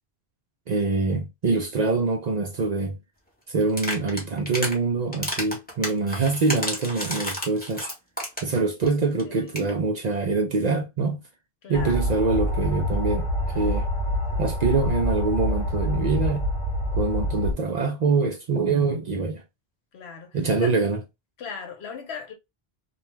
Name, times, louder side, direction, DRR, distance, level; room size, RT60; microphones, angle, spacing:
voice 1, 0.7-3.0 3.5-7.8 8.4-11.2 11.7-13.9 14.4-16.5 16.9-19.4 20.3-21.0, right 4 dB, 55° right, 0.5 m, -24 dB
sound 1, 3.7-4.8 5.1-8.6 8.9-9.0 9.2-9.3 9.5-9.7, equal, 10° left, 0.8 m, -31 dB
voice 2, 9.2-9.7 11.6-12.1 19.9-20.7 21.4-22.3, left 6 dB, 85° left, 1.0 m, -38 dB
sound 2, 11.7-17.5, left 1 dB, 50° left, 0.9 m, -26 dB
2.3 x 2.2 x 3.0 m
omnidirectional pair, 1.1 m